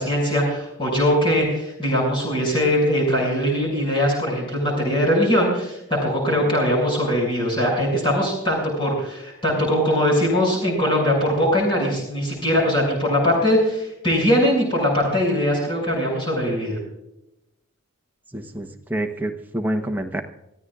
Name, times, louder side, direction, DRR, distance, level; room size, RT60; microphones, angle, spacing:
voice 1, 0.0-16.8, equal, 25° left, -2 dB, 6.6 m, -21 dB
voice 2, 18.3-20.2, right 1 dB, 10° right, 4 dB, 1.0 m, -27 dB
25.5 x 14.5 x 2.5 m, 0.88 s
head